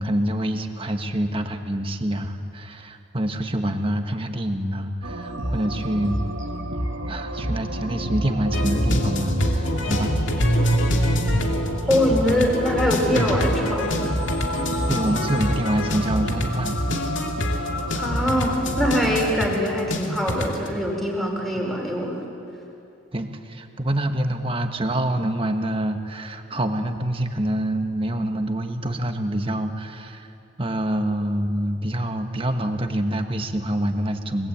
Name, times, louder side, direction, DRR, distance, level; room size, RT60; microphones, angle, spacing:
voice 1, 0.0-6.2 7.1-10.4 14.9-16.8 21.5-21.7 23.1-30.3 30.6-34.5, right 1 dB, 25° right, 6 dB, 1.4 m, -26 dB
sound 1, 5.0-19.1, right 1 dB, 65° right, 2.8 m, -29 dB
sound 2, 8.5-20.7, equal, 65° left, 2.6 m, -25 dB
voice 2, 11.9-14.0 18.0-22.2, equal, ahead, -1 dB, 4.6 m, -23 dB
sound 3, 13.1-19.6, left 2 dB, 80° left, 2.9 m, -35 dB
29.5 x 20.0 x 8.6 m, 2.7 s
head